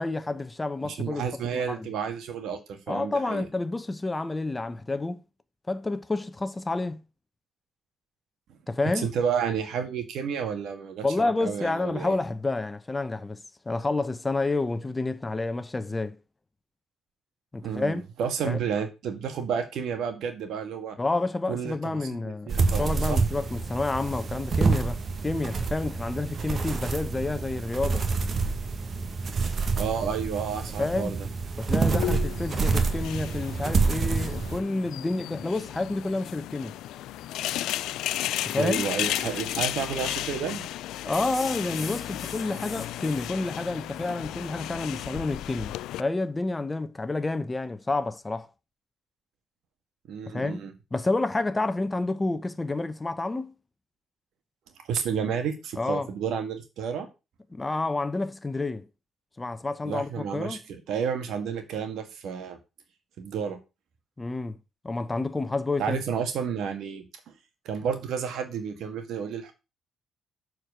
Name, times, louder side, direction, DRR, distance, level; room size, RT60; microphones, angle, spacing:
voice 1, 0.0-1.2 1.5-1.9 2.9-5.2 5.7-7.0 8.7-9.1 11.0-16.2 17.5-18.0 18.4-18.6 21.0-28.1 30.8-31.2 31.6-36.8 38.4-38.8 41.0-48.5 50.3-50.6 50.9-53.5 55.8-56.1 57.5-58.9 59.4-60.6 64.2-64.6 64.8-66.0, left 2 dB, 20° left, 0.9 m, -29 dB
voice 2, 0.8-3.5 9.0-12.2 17.6-21.0 21.5-23.2 29.8-31.3 38.6-40.7 50.1-50.7 54.8-57.1 59.8-62.6 63.2-63.6 65.8-67.1 67.7-69.5, right 7 dB, 75° right, 1.9 m, -31 dB
sound 1, 22.5-34.6, right 4 dB, 45° right, 1.5 m, -27 dB
sound 2, 31.9-46.0, left 14 dB, 90° left, 0.4 m, -34 dB
sound 3, 41.1-44.1, left 4 dB, 35° left, 1.2 m, -43 dB
7.2 x 4.7 x 6.5 m
cardioid pair, 90°, 0 cm